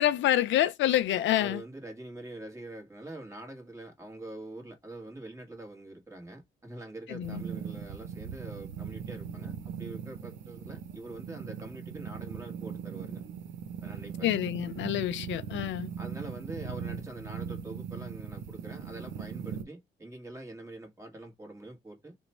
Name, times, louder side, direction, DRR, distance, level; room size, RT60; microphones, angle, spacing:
voice 1, 0.0-1.6 7.1-7.4 14.2-15.9, left 12 dB, 70° left, 0.4 m, -27 dB
voice 2, 1.3-13.2 13.8-14.4 16.0-22.2, right 2 dB, 15° right, 1.6 m, -44 dB
sound 1, 7.2-19.6, right 7 dB, 80° right, 0.8 m, -39 dB
2.9 x 2.2 x 4.2 m
cardioid pair, 90°, 20 cm